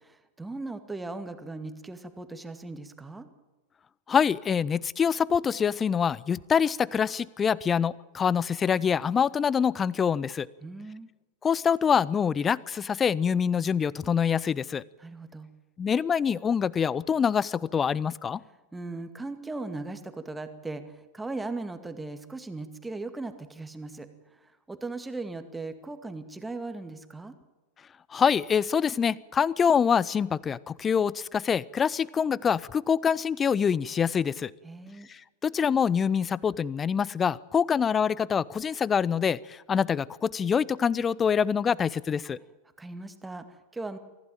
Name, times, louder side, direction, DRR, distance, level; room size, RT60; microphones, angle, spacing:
voice 1, 0.0-3.3 10.6-11.1 15.0-15.5 18.7-27.4 34.6-35.1 42.8-44.0, right 3 dB, 10° right, 9 dB, 2.2 m, -38 dB
voice 2, 4.1-10.5 11.4-14.8 15.8-18.4 28.1-34.5 35.1-42.4, left 7 dB, 20° left, 24 dB, 0.7 m, -25 dB
24.5 x 15.5 x 9.0 m, 1.2 s
figure-of-eight pair, 90°, 0 cm